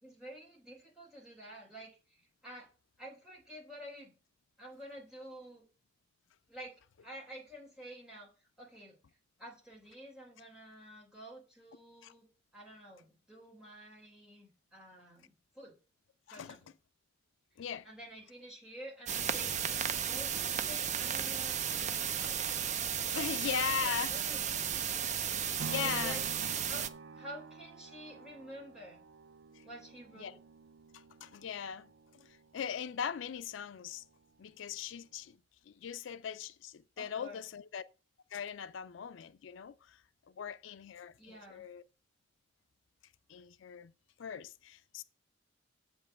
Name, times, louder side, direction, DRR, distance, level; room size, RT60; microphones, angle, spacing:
voice 1, 0.0-2.7 3.0-4.1 4.6-5.6 6.5-6.7 7.0-9.0 9.4-15.7 16.3-16.7 17.8-19.7 20.1-22.4 23.1-24.8 25.7-26.2 26.7-29.0 29.6-30.4 37.0-37.4 41.2-41.7, right 1 dB, 5° right, 3.7 m, -50 dB
sound 1, 19.1-26.9, right 8 dB, 40° right, 0.6 m, -34 dB
voice 2, 23.1-24.1 25.6-26.2 29.5-29.6 30.2-30.3 30.9-31.9 32.1-34.0 34.4-35.4 35.7-37.8 38.3-40.0 40.4-41.8 43.3-43.9 44.2-45.0, left 8 dB, 75° left, 0.4 m, -39 dB
sound 2, 25.6-33.7 34.2-34.3, right 4 dB, 75° right, 0.6 m, -49 dB
7.7 x 5.3 x 7.3 m
head